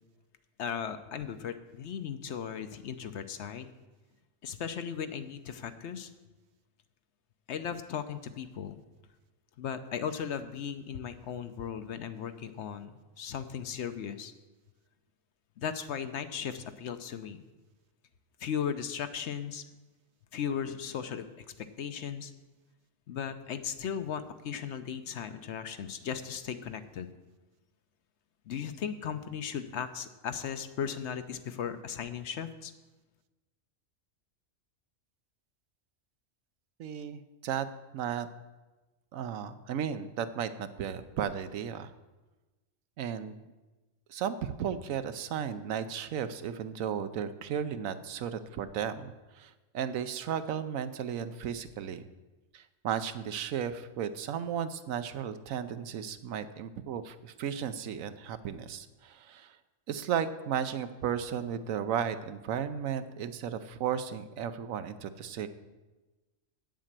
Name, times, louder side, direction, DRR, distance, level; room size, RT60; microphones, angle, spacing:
voice 1, 0.6-3.7 4.4-6.1 7.5-8.8 9.6-14.3 15.6-17.4 18.4-19.6 20.3-21.3 21.6-22.3 23.1-27.1 28.5-32.7, left 8 dB, 65° left, 10 dB, 0.9 m, -37 dB
voice 2, 36.8-37.7 37.9-38.3 39.1-41.9 43.0-43.4 44.1-52.1 52.5-59.6 59.9-65.5, right 8 dB, 85° right, 11 dB, 1.1 m, -34 dB
8.8 x 7.4 x 7.4 m, 1.2 s
omnidirectional pair, 1.4 m